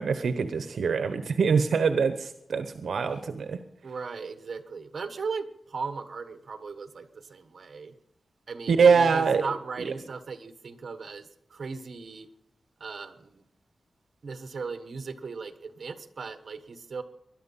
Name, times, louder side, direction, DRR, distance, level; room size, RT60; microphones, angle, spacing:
voice 1, 0.0-3.6 8.7-9.4 9.8-9.9, right 5 dB, 75° right, 9 dB, 1.0 m, -24 dB
voice 2, 3.8-7.9 8.5-12.3 12.8-13.4 14.2-17.0, right 5 dB, 50° right, 10 dB, 1.3 m, -37 dB
20.5 x 11.5 x 5.6 m, 0.80 s
wide cardioid pair, 155°, 0 cm